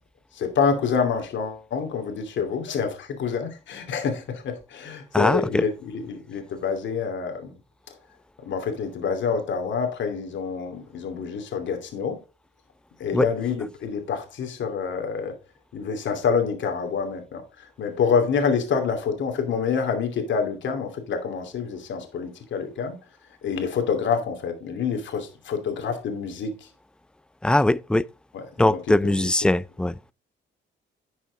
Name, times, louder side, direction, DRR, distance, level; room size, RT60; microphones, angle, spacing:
voice 1, 0.3-7.5 7.9-8.0 8.4-12.2 13.0-15.4 15.7-23.0 23.4-26.7 28.3-29.3, left 6 dB, 70° left, 2.7 m, -27 dB
voice 2, 5.1-5.7 13.1-13.3 27.4-28.0 28.6-30.0, left 1 dB, 5° left, 0.4 m, -21 dB
11.5 x 6.2 x 3.9 m
cardioid pair, 90°, 20 cm